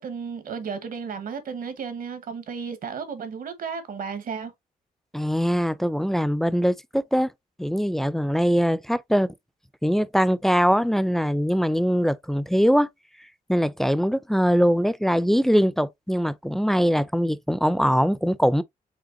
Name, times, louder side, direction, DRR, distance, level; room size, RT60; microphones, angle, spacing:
voice 1, 0.0-4.5, right 6 dB, 70° right, 1.2 m, -33 dB
voice 2, 5.1-7.3 7.6-9.3 9.8-12.9 13.5-18.6, equal, ahead, 0.3 m, -22 dB
5.1 x 3.6 x 2.6 m
cardioid pair, 115°, 15 cm